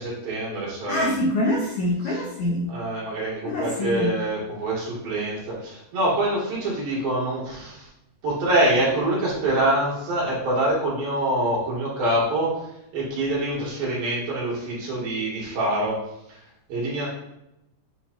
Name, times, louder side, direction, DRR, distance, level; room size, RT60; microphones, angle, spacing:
voice 1, 0.0-1.1 2.0-2.2 2.7-7.9 8.2-12.6 12.9-16.0 16.7-17.1, right 1 dB, 60° right, -6 dB, 3.9 m, -25 dB
voice 2, 0.9-2.7 3.4-4.1, left 1 dB, 80° left, -3 dB, 1.7 m, -25 dB
9.8 x 4.6 x 2.7 m, 0.86 s
omnidirectional pair, 4.7 m